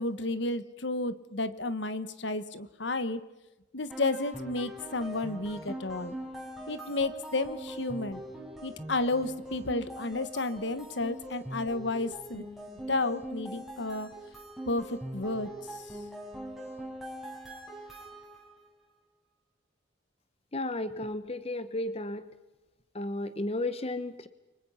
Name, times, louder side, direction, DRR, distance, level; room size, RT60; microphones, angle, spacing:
voice 1, 0.0-3.2 3.7-6.1 6.7-8.2 8.6-12.4 12.9-14.1 14.7-15.8, left 2 dB, 65° left, 13 dB, 1.4 m, -32 dB
sound 1, 3.9-18.6, right 1 dB, ahead, 5.7 m, -42 dB
voice 2, 20.5-22.2 22.9-24.3, left 2 dB, 30° left, 12 dB, 1.1 m, -33 dB
29.5 x 24.5 x 5.8 m, 1.0 s
head